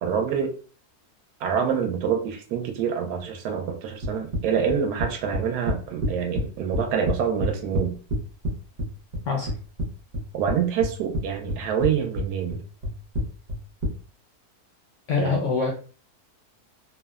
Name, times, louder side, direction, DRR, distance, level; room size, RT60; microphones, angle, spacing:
voice 1, 0.0-0.5 1.4-8.0 10.3-12.6 15.2-15.4, right 7 dB, 80° right, 4 dB, 1.1 m, -26 dB
sound 1, 4.0-6.4 6.7-8.5 8.8-9.9 10.1-11.2 11.5-11.9 12.2-13.9, left 1 dB, 60° right, 0.9 m, -27 dB
voice 2, 15.1-15.7, left 5 dB, 70° left, 0 dB, 0.7 m, -24 dB
3.0 x 2.1 x 2.2 m, 0.39 s
omnidirectional pair, 1.7 m